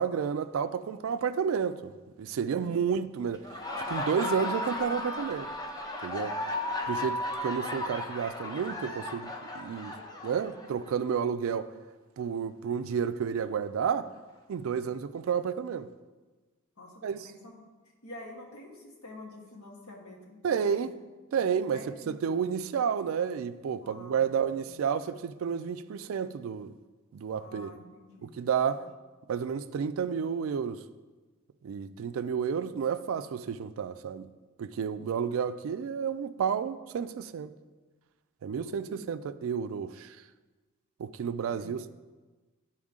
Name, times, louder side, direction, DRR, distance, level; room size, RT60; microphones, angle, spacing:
voice 1, 0.0-1.9 2.2-3.5 3.9-5.5 6.0-6.3 6.9-9.9 10.2-11.7 12.2-14.1 14.5-15.9 17.0-17.3 20.4-20.9 21.3-26.7 27.1-27.7 28.2-28.8 29.3-30.8 31.6-34.3 34.6-37.5 38.4-40.2 41.0-41.9, right 7 dB, 70° right, 0.3 m, -31 dB
voice 2, 2.6-2.9 16.8-17.6 18.0-20.8 21.3-21.4 21.7-22.1 23.8-24.8 27.3-28.8 38.5-39.1 41.5-41.8, left 2 dB, 90° left, 1.4 m, -48 dB
Laughter, 3.3-11.0, left 2 dB, 20° left, 0.6 m, -35 dB
11.0 x 4.4 x 3.6 m
head